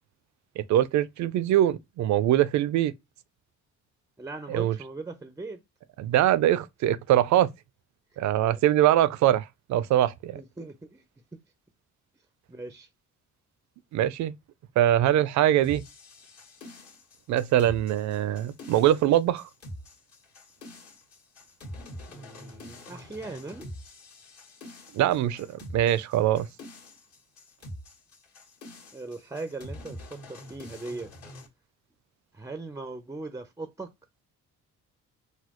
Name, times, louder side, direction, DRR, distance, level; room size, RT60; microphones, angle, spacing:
voice 1, 0.6-2.9 4.5-4.7 6.0-7.5 8.2-10.4 13.9-14.3 14.8-15.8 17.3-19.5 24.9-26.5, right 12 dB, 70° right, 0.4 m, -23 dB
voice 2, 4.2-5.6 8.4-8.6 10.3-11.0 12.5-12.9 22.1-23.7 28.9-30.0 30.3-31.1 32.3-33.9, right 3 dB, 10° right, 0.4 m, -39 dB
sound 1, 15.6-31.5, left 1 dB, 55° left, 1.6 m, -45 dB
4.1 x 2.3 x 2.9 m
cardioid pair, 90°, 30 cm